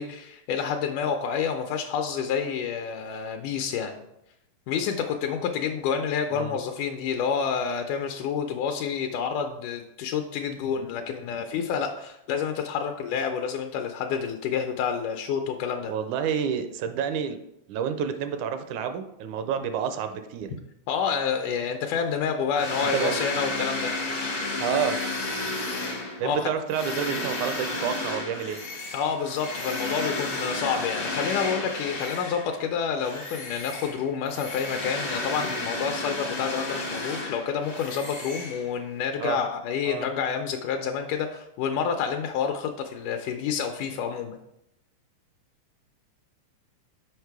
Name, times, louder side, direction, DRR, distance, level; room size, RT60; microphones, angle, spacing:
voice 1, 0.0-4.0 4.7-15.9 20.9-23.9 26.2-26.5 28.9-44.4, left 7 dB, 80° left, 4 dB, 2.0 m, -29 dB
voice 2, 15.9-17.4 17.7-20.6 22.9-23.2 24.6-25.0 26.2-28.6 39.2-39.4 39.9-40.1, right 8 dB, 80° right, 8 dB, 1.9 m, -29 dB
sound 1, 22.5-32.6 33.0-39.0, left 2 dB, 60° left, 0.6 m, -32 dB
6.6 x 5.2 x 4.6 m, 0.81 s
omnidirectional pair, 3.7 m